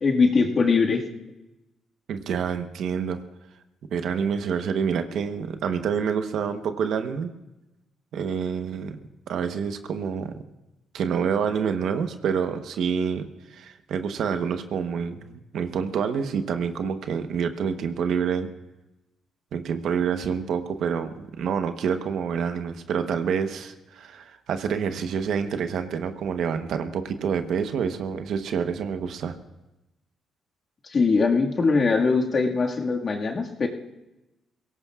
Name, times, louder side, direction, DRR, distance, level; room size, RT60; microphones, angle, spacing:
voice 1, 0.0-1.0 30.8-33.7, left 4 dB, 45° left, 0 dB, 1.9 m, -21 dB
voice 2, 2.1-3.2 3.9-7.3 8.1-9.0 9.3-10.3 10.9-18.5 19.5-29.3, right 7 dB, 70° right, 8 dB, 1.0 m, -27 dB
22.5 x 17.5 x 2.4 m, 0.99 s
cardioid pair, 90°, 0 cm